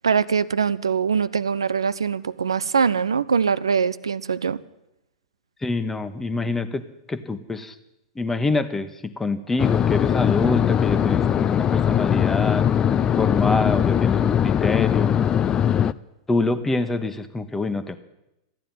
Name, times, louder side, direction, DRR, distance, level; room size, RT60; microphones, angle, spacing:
voice 1, 0.0-4.6, right 6 dB, 80° right, 16 dB, 0.6 m, -22 dB
voice 2, 5.6-6.8 7.1-7.8 8.1-12.6 13.2-15.2 16.3-18.0, left 3 dB, 10° left, 11 dB, 1.2 m, -25 dB
sound 1, 9.6-15.9, left 9 dB, 25° left, 0.5 m, -20 dB
14.0 x 10.0 x 9.4 m, 0.90 s
hypercardioid pair, 100°, 3 cm